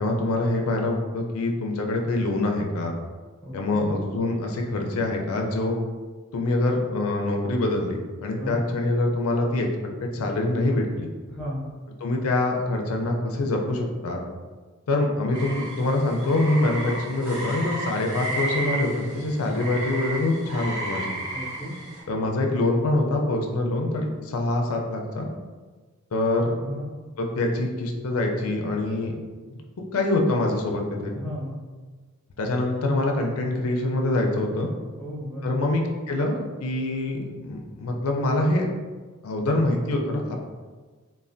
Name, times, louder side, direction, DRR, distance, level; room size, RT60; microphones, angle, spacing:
voice 1, 0.0-3.0 3.5-5.8 6.3-9.7 10.0-11.1 12.0-14.2 14.9-21.1 22.1-25.3 26.1-26.5 27.2-29.1 29.9-31.1 32.4-34.7 35.4-38.7 39.2-40.4, left 2 dB, 70° left, 1 dB, 0.4 m, -25 dB
voice 2, 3.4-3.9 8.4-8.6 11.3-11.7 21.3-21.8 26.6-26.9 31.1-31.6 35.0-35.6, equal, 5° left, -7 dB, 0.7 m, -34 dB
sound 1, 15.3-22.0, right 2 dB, 55° right, 1.3 m, -33 dB
3.2 x 2.1 x 2.5 m, 1.4 s
head